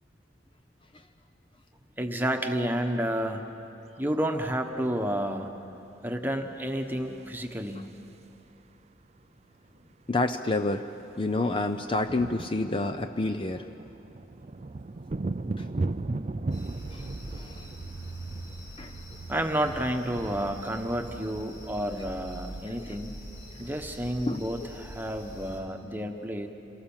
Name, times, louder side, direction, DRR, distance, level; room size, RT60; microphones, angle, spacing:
voice 1, 2.0-3.5 4.0-5.5 6.0-7.9 19.3-23.2 23.6-26.5, equal, 10° right, 4 dB, 1.2 m, -30 dB
sound 1, 6.9-8.4 9.7-9.8 10.0-10.3 10.5-22.6, right 2 dB, 35° right, 0.4 m, -38 dB
voice 2, 10.1-10.8 11.1-13.6 17.3-17.6 18.8-18.9 24.3-24.4, left 2 dB, 30° left, 7 dB, 0.5 m, -28 dB
sound 2, 16.5-25.6, right 1 dB, 55° left, 5.4 m, -43 dB
27.5 x 18.0 x 7.3 m, 2.9 s
head